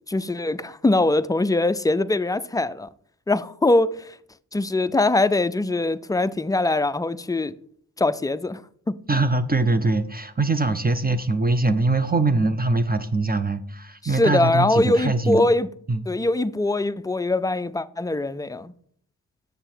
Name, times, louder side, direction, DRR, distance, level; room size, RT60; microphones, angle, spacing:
voice 1, 0.1-2.9 3.3-4.2 4.5-7.5 8.0-8.6 8.9-9.0 14.0-15.7 16.1-18.7, left 2 dB, 10° left, 0.3 m, -22 dB
voice 2, 9.1-15.5 15.9-16.0, right 2 dB, 25° right, 0.6 m, -22 dB
6.8 x 6.6 x 4.5 m
cardioid pair, 55°, 39 cm